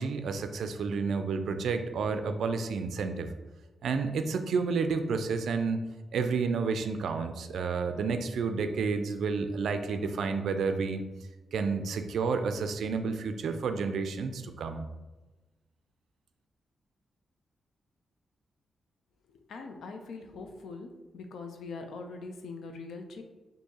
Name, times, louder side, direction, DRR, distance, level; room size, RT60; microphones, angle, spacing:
voice 1, 0.0-3.3 3.8-5.8 6.1-11.0 11.5-14.8, right 5 dB, 80° right, 7 dB, 0.3 m, -30 dB
voice 2, 19.3-23.2, left 3 dB, 80° left, 4 dB, 0.5 m, -42 dB
4.5 x 2.7 x 2.8 m, 1.2 s
wide cardioid pair, 165°, 0 cm